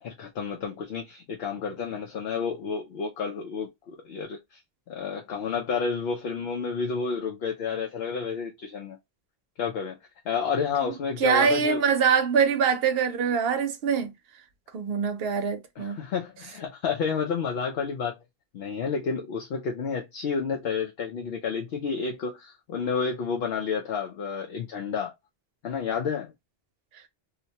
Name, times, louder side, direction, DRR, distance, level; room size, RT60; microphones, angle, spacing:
voice 1, 0.0-4.6 4.9-9.0 9.6-10.0 10.2-11.8 15.8-18.2 18.5-25.1 25.6-26.3, left 5 dB, 75° left, 0.8 m, -30 dB
voice 2, 11.2-14.1 14.7-16.0, right 6 dB, 70° right, 0.8 m, -24 dB
2.8 x 2.2 x 2.7 m
omnidirectional pair, 1.1 m